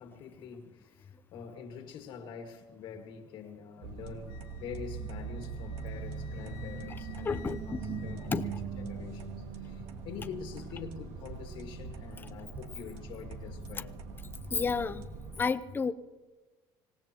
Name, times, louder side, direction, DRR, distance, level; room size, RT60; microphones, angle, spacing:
voice 1, 0.0-14.0, left 7 dB, 60° left, 1.9 m, -46 dB
sound 1, 3.8-15.4, right 4 dB, 80° right, 2.1 m, -41 dB
Wind instrument woodwind instrument, 4.3-8.9, left 15 dB, 80° left, 1.4 m, -57 dB
voice 2, 7.2-8.0 8.3-8.5 14.5-15.0 15.4-15.9, left 5 dB, 20° left, 0.7 m, -31 dB
26.0 x 18.0 x 3.0 m
cardioid pair, 120°, 10 cm